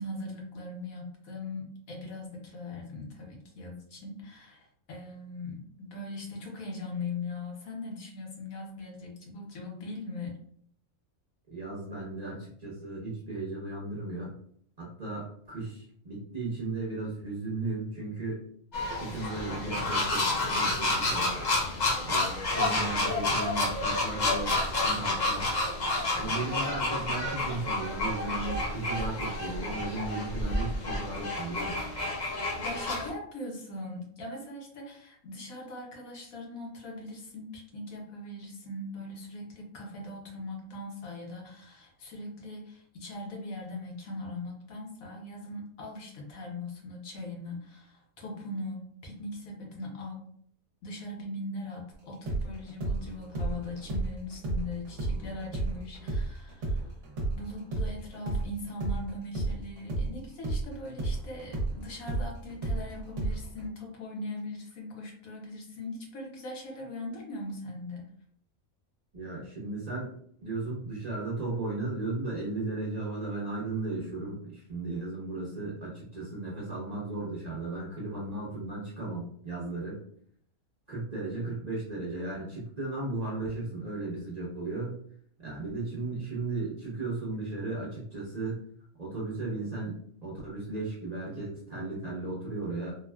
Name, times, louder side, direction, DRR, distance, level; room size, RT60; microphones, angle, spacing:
voice 1, 0.0-10.3 32.6-50.3 50.8-56.9 57.3-68.0, left 2 dB, 75° left, -1 dB, 1.2 m, -40 dB
voice 2, 11.5-14.3 14.8-18.4 18.9-21.4 22.0-25.5 26.1-31.8 69.1-70.1 70.4-80.0 80.9-85.0 85.4-88.6 89.0-92.9, right 2 dB, 35° right, -7 dB, 0.7 m, -35 dB
sound 1, 18.7-33.1, left 2 dB, 50° left, 0.5 m, -30 dB
sound 2, 52.3-60.1 60.4-63.7, right 2 dB, 65° right, 1.0 m, -32 dB
3.5 x 2.2 x 2.2 m, 0.64 s
omnidirectional pair, 1.5 m